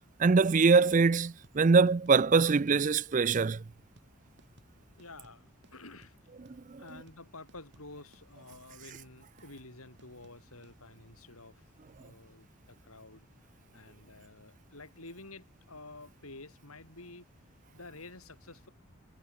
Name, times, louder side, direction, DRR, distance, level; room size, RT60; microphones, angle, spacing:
voice 1, 0.2-3.6 6.7-6.8, right 4 dB, 35° right, 0.4 m, -23 dB
sound 1, 1.4-10.8, right 1 dB, 50° right, 7.5 m, -63 dB
voice 2, 4.9-6.2 6.8-11.7 12.0-13.3 13.7-17.3 17.7-18.7, left 2 dB, 85° left, 7.8 m, -50 dB
head